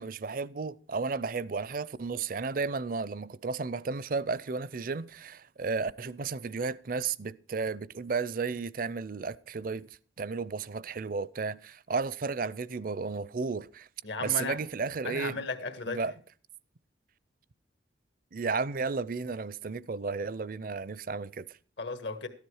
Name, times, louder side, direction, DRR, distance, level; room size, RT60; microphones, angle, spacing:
voice 1, 0.0-9.9 10.2-13.9 14.2-15.4 15.9-16.1 18.3-21.6, right 4 dB, 50° right, 0.5 m, -33 dB
voice 2, 14.0-14.6 15.0-16.0 21.8-22.3, left 3 dB, 70° left, 1.6 m, -35 dB
13.0 x 10.5 x 4.8 m
head